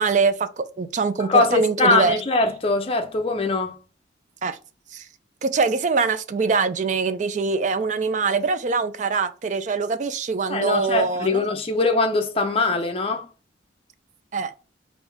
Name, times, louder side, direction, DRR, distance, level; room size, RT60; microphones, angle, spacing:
voice 1, 0.0-2.1 4.4-4.6 4.9-5.0 5.4-11.4 14.3-14.5, right 4 dB, 40° right, 0.3 m, -23 dB
voice 2, 1.2-3.8 10.5-13.2, left 3 dB, 30° left, 0.6 m, -22 dB
3.5 x 2.6 x 3.4 m
head